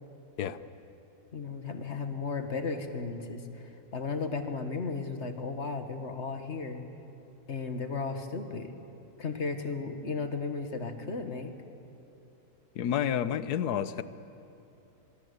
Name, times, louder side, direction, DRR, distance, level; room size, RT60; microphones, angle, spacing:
voice 1, 1.3-6.9 7.5-8.7 9.2-11.5, left 4 dB, 45° left, 7 dB, 1.7 m, -35 dB
voice 2, 12.7-14.0, left 9 dB, 80° left, 14 dB, 1.3 m, -29 dB
24.0 x 23.0 x 8.1 m, 2.9 s
omnidirectional pair, 1.7 m